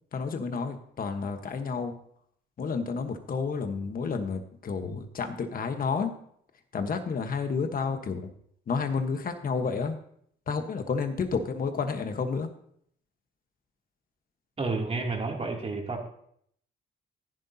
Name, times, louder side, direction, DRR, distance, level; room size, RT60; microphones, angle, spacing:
voice 1, 0.1-2.0 2.6-6.1 6.7-8.3 8.7-10.0 10.5-12.5, left 5 dB, 45° left, 6 dB, 1.3 m, -30 dB
voice 2, 14.6-16.1, right 3 dB, 30° right, 0 dB, 2.9 m, -30 dB
15.0 x 10.5 x 2.8 m, 0.67 s
cardioid pair, 90°, 20 cm